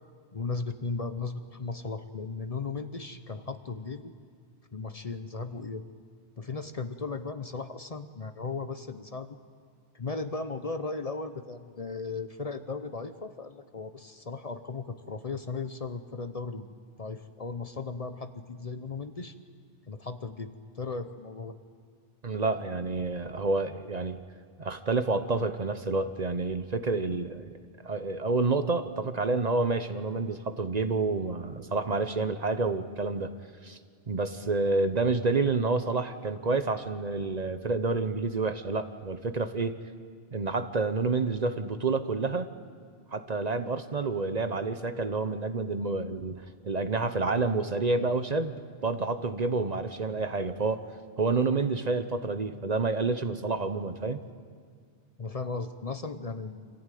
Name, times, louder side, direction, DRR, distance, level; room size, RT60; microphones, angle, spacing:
voice 1, 0.3-4.1 4.7-5.8 6.4-9.4 9.9-16.7 17.0-19.3 19.9-21.6 55.2-56.7, left 4 dB, 40° left, 9 dB, 0.8 m, -36 dB
voice 2, 22.2-24.2 24.6-27.5 27.8-33.3 33.6-33.8 34.1-39.7 40.3-42.5 43.1-50.8 51.2-54.2, right 3 dB, 45° right, 10 dB, 0.9 m, -29 dB
26.0 x 14.5 x 9.2 m, 2.1 s
omnidirectional pair, 1.0 m